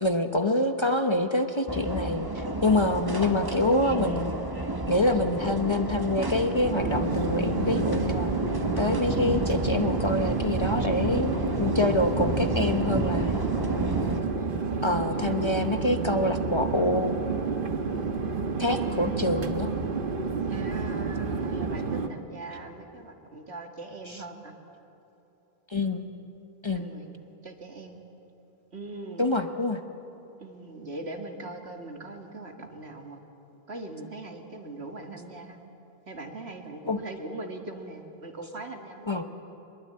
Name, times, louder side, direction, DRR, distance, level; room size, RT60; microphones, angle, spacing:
voice 1, 0.0-4.3 4.9-8.3 8.8-13.4 14.8-17.1 18.6-19.7 24.1-24.2 25.7-26.0 26.6-26.9 29.2-29.8 36.9-37.0 39.1-39.2, left 1 dB, 30° left, 7 dB, 0.9 m, -26 dB
sound 1, 1.7-14.2, right 1 dB, 20° right, 1.5 m, -31 dB
Chatter / Fixed-wing aircraft airplane, 6.6-22.1, right 4 dB, 55° right, 1.3 m, -30 dB
voice 2, 20.5-24.5 26.7-28.0 28.7-29.3 30.4-33.3 33.7-35.6 36.1-39.2, right 2 dB, 75° right, 3 dB, 2.3 m, -41 dB
23.0 x 21.5 x 8.6 m, 2.9 s
omnidirectional pair, 1.1 m